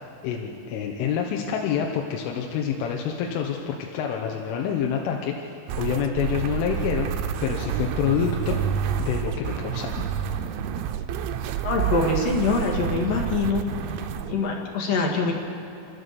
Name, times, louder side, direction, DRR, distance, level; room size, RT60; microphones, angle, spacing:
voice 1, 0.2-8.6 9.0-9.9, left 8 dB, 85° left, 0 dB, 3.7 m, -27 dB
sound 1, 5.7-14.3, right 9 dB, 85° right, 3.2 m, -29 dB
voice 2, 11.6-13.6 14.3-15.3, left 3 dB, 55° left, -1 dB, 3.5 m, -24 dB
29.5 x 12.5 x 6.9 m, 2.6 s
omnidirectional pair, 5.5 m